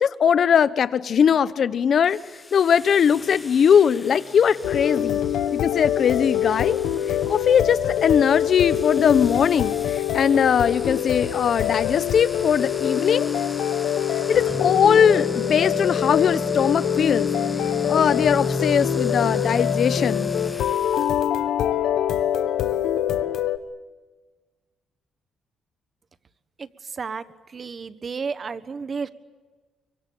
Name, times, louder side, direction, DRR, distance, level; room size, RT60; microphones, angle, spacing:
voice 1, 0.0-2.2 2.5-5.2 5.5-6.8 7.1-13.3 14.3-17.3 17.9-20.3, left 7 dB, 55° left, 15 dB, 1.0 m, -20 dB
sound 1, 2.0-21.2, left 2 dB, 20° left, 0.9 m, -34 dB
sound 2, 4.6-23.6, left 10 dB, 80° left, 1.3 m, -25 dB
voice 2, 26.6-27.2 27.5-29.1, right 5 dB, 40° right, 13 dB, 1.3 m, -32 dB
25.0 x 23.5 x 8.6 m, 1.3 s
cardioid pair, 90°, 0 cm